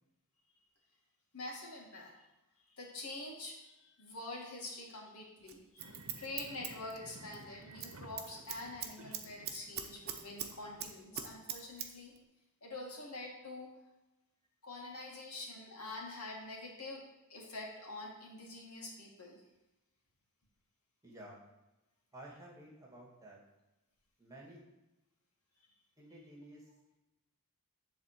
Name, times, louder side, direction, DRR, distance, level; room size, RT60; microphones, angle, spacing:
voice 1, 1.3-2.1 2.8-12.1 12.6-13.7 14.6-17.0 17.3-19.4, left 2 dB, 75° left, -1 dB, 2.3 m, -46 dB
Scissors, 5.5-7.4 7.7-10.5 10.8-11.9 12.2-12.3, right 9 dB, 45° right, 1.0 m, -41 dB
sound 1, 5.8-10.9, right 2 dB, 80° right, 1.0 m, -55 dB
voice 2, 21.0-21.4 22.1-23.4 24.2-24.6 26.0-26.6, right 1 dB, 15° right, -2 dB, 2.1 m, -52 dB
11.0 x 4.1 x 7.5 m, 0.98 s
head